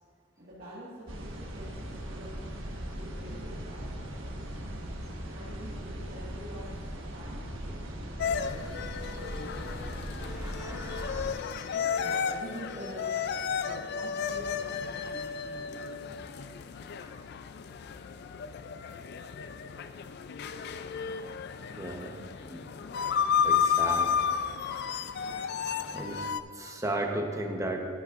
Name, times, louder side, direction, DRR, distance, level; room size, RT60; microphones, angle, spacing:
voice 1, 0.4-2.3 2.9-3.8 4.2-4.5 5.2-10.7 12.0-16.3, equal, 50° right, -9 dB, 1.8 m, -47 dB
sound 1, 1.1-11.3, equal, 90° right, 1.3 m, -39 dB
sound 2, 8.2-26.4, left 7 dB, 55° left, 0.3 m, -32 dB
voice 2, 10.3-11.5 17.0-17.2 21.8-22.7 23.4-24.2 24.7-25.1 25.9-26.2 26.5-27.9, right 1 dB, 15° right, 2 dB, 0.9 m, -36 dB
12.0 x 11.0 x 2.5 m, 2.8 s
head